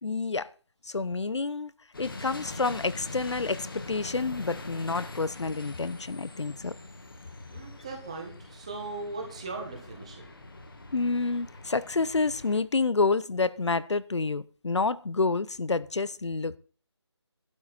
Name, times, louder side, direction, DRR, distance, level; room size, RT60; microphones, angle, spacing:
voice 1, 0.0-0.5 0.8-1.7 2.0-6.7 10.9-16.6, left 3 dB, 75° left, 0.7 m, -28 dB
sound 1, 1.9-12.6, left 2 dB, 50° left, 1.8 m, -43 dB
voice 2, 7.5-10.3, right 3 dB, 15° right, 1.4 m, -39 dB
12.0 x 11.0 x 4.3 m
figure-of-eight pair, 175°, 15 cm